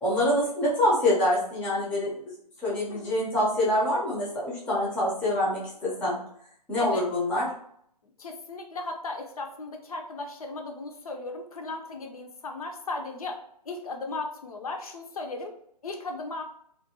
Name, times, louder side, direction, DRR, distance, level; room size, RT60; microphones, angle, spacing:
voice 1, 0.0-2.3 2.6-6.2 6.7-7.5, left 1 dB, 5° left, -7 dB, 0.4 m, -25 dB
voice 2, 8.2-15.6 15.8-16.4, left 3 dB, 60° left, 3 dB, 0.5 m, -36 dB
2.5 x 2.2 x 2.6 m, 0.68 s
figure-of-eight pair, 130°, 21 cm